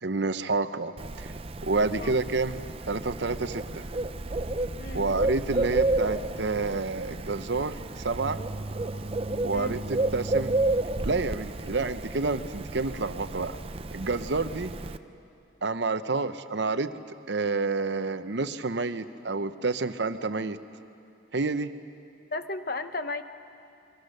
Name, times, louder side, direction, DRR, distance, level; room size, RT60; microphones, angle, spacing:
voice 1, 0.0-1.3 1.6-3.8 4.9-8.4 9.4-10.5 11.0-13.6 13.9-14.7 15.6-17.0 17.3-20.6 21.3-21.7, right 3 dB, 60° right, 11 dB, 0.8 m, -29 dB
Bird, 1.0-15.0, right 2 dB, 30° right, 0.6 m, -31 dB
voice 2, 22.3-23.2, left 2 dB, 50° left, 9 dB, 1.0 m, -34 dB
29.0 x 22.5 x 6.6 m, 2.6 s
head